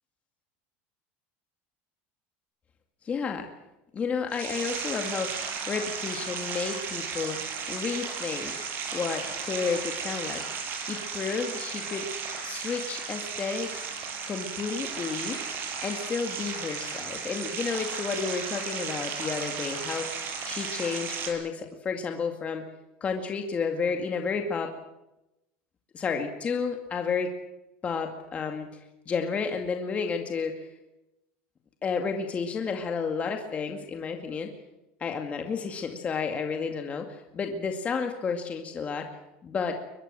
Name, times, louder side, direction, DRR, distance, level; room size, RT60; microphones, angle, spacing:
voice 1, 3.0-3.5 3.9-5.3 5.7-7.4 7.7-8.6 8.9-10.4 10.9-12.1 12.4-13.8 14.3-15.4 15.8-22.6 23.0-24.7 25.9-27.3 27.8-28.7 29.1-30.7 31.8-34.5 35.0-39.1 39.4-39.7, left 5 dB, 25° left, 4 dB, 2.2 m, -31 dB
sound 1, 4.3-21.3, right 6 dB, 40° right, 6.5 m, -35 dB
23.0 x 21.5 x 7.7 m, 0.92 s
cardioid pair, 150°, 6 cm